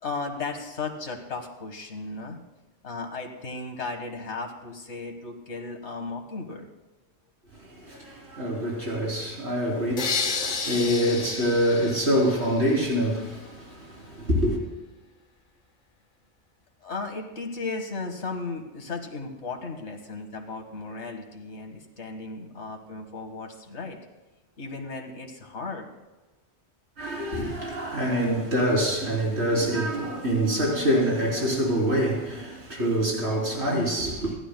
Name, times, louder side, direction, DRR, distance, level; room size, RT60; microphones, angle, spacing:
voice 1, 0.0-2.4 2.8-6.7 16.8-24.1 24.6-25.9, left 3 dB, 75° left, 1.8 m, -35 dB
voice 2, 7.5-14.6 27.0-34.4, equal, 70° right, 3.7 m, -25 dB
sound 1, 10.0-13.0, left 5 dB, 50° left, 1.0 m, -31 dB
26.5 x 11.0 x 2.2 m
omnidirectional pair, 1.2 m